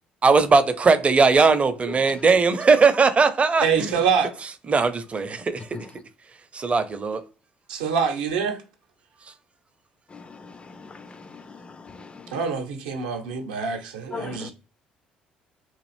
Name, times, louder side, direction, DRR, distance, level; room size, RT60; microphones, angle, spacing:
voice 1, 0.2-4.0 4.7-5.8 6.5-7.2, right 4 dB, 30° right, 0.5 m, -19 dB
voice 2, 3.6-4.3 7.7-8.6 12.3-14.5, right 6 dB, 75° right, 0.6 m, -25 dB
voice 3, 10.1-12.4 14.1-14.5, left 5 dB, 25° left, 0.4 m, -40 dB
3.0 x 2.4 x 3.2 m
figure-of-eight pair, 50°, 4 cm